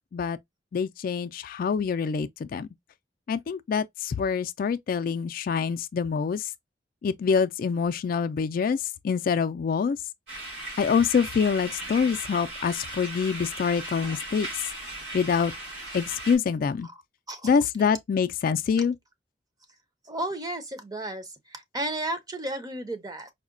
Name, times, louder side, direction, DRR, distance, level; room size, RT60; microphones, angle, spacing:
voice 1, 0.7-2.7 3.3-6.5 7.0-10.0 10.8-14.5 15.1-15.5 15.9-16.9 17.4-19.0, left 6 dB, 50° left, 0.3 m, -25 dB
sound 1, 10.3-16.4, right 1 dB, 70° right, 2.9 m, -37 dB
voice 2, 20.1-23.3, right 1 dB, 20° right, 0.6 m, -33 dB
4.7 x 2.1 x 2.5 m
head